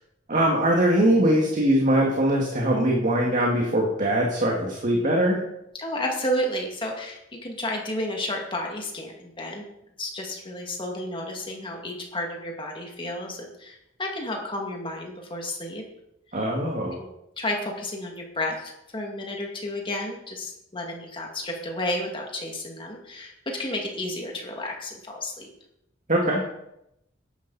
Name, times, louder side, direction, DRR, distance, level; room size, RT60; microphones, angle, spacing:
voice 1, 0.3-5.4 16.3-17.0 26.1-26.4, right 1 dB, 45° right, -1 dB, 2.1 m, -22 dB
voice 2, 5.8-9.6 10.0-15.8 17.0-17.1 17.4-25.5, left 1 dB, 25° left, 0 dB, 2.3 m, -32 dB
12.5 x 11.0 x 4.2 m, 0.82 s
head